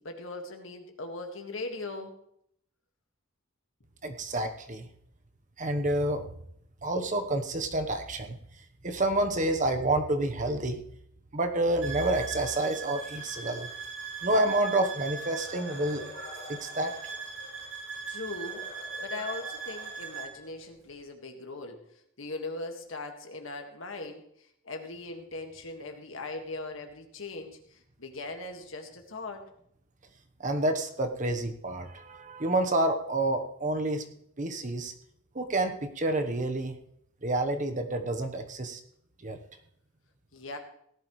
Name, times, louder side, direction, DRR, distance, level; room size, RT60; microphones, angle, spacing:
voice 1, 0.0-2.1 18.1-18.6 19.0-21.8 22.2-24.2 24.6-29.5 40.3-40.6, left 2 dB, 70° left, 4 dB, 1.9 m, -39 dB
voice 2, 4.0-4.9 5.6-6.2 6.8-8.4 8.8-10.8 11.3-13.7 14.2-16.1 16.5-16.9 30.4-34.0 34.4-34.9 35.3-36.7 37.2-38.8 39.2-39.4, right 1 dB, 35° right, 6 dB, 1.1 m, -28 dB
sound 1, 11.8-20.3, right 5 dB, 70° right, 6.6 m, -40 dB
sound 2, 15.3-17.7 18.3-20.7, left 2 dB, 50° left, 2.5 m, -48 dB
17.5 x 11.5 x 3.2 m, 0.70 s
head